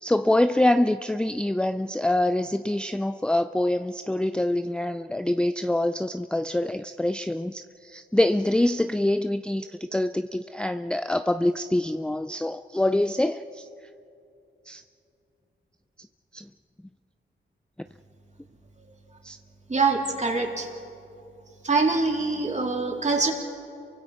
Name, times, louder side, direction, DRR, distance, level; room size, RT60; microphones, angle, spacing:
voice 1, 0.0-13.7 14.7-14.8 16.3-16.5 19.2-19.4, left 1 dB, 5° left, 10 dB, 0.5 m, -25 dB
voice 2, 19.7-20.7 21.6-23.3, right 3 dB, 35° right, 1 dB, 3.6 m, -24 dB
28.5 x 24.0 x 5.0 m, 2.7 s
cardioid pair, 65°, 21 cm